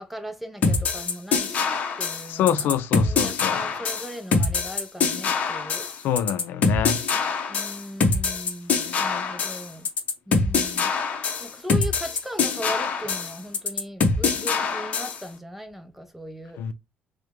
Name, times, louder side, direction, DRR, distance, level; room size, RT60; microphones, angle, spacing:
voice 1, 0.0-2.7 3.0-5.9 7.5-9.9 10.3-10.9 11.4-16.6, equal, 5° right, 0.4 m, -38 dB
sound 1, 0.6-15.2, left 4 dB, 40° left, 0.8 m, -24 dB
voice 2, 2.3-3.6 6.0-7.0 16.6-16.7, left 9 dB, 75° left, 0.5 m, -25 dB
4.7 x 2.1 x 3.5 m
cardioid pair, 165°, 4 cm